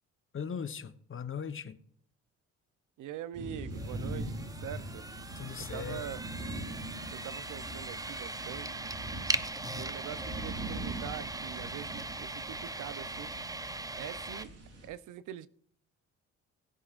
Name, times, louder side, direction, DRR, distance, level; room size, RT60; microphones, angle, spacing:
voice 1, 0.3-1.8 5.3-6.1 9.6-9.9, left 6 dB, 45° left, 1.1 m, -39 dB
voice 2, 3.0-5.0 5.7-6.2 7.1-8.8 9.7-13.3 14.0-14.5 14.8-15.5, right 11 dB, 80° right, 0.8 m, -43 dB
sound 1, 3.3-14.9, right 1 dB, 55° right, 4.6 m, -42 dB
sound 2, 3.7-14.4, right 2 dB, 10° right, 0.7 m, -39 dB
20.5 x 8.0 x 2.5 m
cardioid pair, 90°, 30 cm